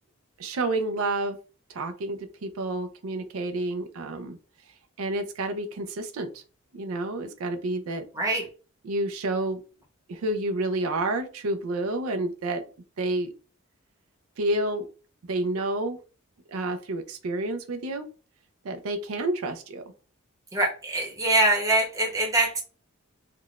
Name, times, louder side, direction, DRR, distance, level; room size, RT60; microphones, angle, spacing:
voice 1, 0.4-1.4 1.7-4.4 5.0-6.4 6.7-8.0 8.8-9.6 10.1-12.6 13.0-13.3 14.4-14.9 15.3-16.0 16.5-18.1 18.6-19.8, right 2 dB, 85° right, 7 dB, 0.4 m, -29 dB
voice 2, 8.1-8.5 20.5-22.6, right 2 dB, 15° right, 0 dB, 0.8 m, -23 dB
3.6 x 2.2 x 2.4 m, 0.35 s
head